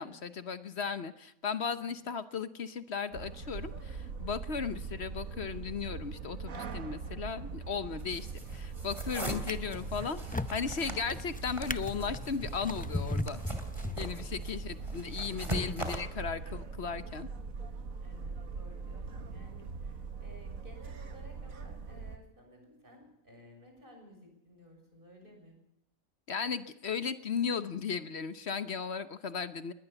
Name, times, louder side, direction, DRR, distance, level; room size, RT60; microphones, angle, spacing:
voice 1, 0.0-8.3 8.5-13.4 14.0-17.3 26.3-29.7, left 6 dB, 55° left, 12 dB, 1.2 m, -36 dB
sound 1, 3.1-22.2, right 4 dB, 90° right, 1.9 m, -42 dB
sound 2, 8.0-16.0, right 1 dB, 20° right, 3.0 m, -41 dB
Drawer open or close, 8.3-8.7 9.3-14.5 15.2-15.3, left 2 dB, 10° left, 0.4 m, -39 dB
voice 2, 14.2-14.5 18.0-25.6, equal, 40° right, 2 dB, 6.9 m, -56 dB
21.0 x 19.0 x 7.0 m, 0.81 s
omnidirectional pair, 1.4 m